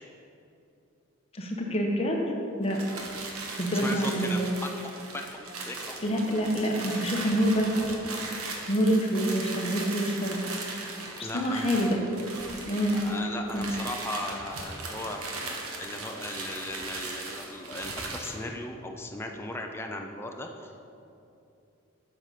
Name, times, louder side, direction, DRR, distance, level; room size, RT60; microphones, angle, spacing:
voice 1, 1.3-2.3 2.6-2.8 3.5-4.5 6.0-7.7 8.7-10.5 11.2-12.0 12.7-13.0 13.5-13.7, equal, 25° left, 0 dB, 1.1 m, -26 dB
sound 1, 2.6-18.4, right 3 dB, 90° right, 1.3 m, -38 dB
voice 2, 3.8-4.7 5.1-6.0 11.2-11.7 12.9-15.2 15.8-20.9, left 1 dB, 10° left, 2 dB, 0.5 m, -37 dB
7.8 x 6.7 x 5.7 m, 2.7 s
head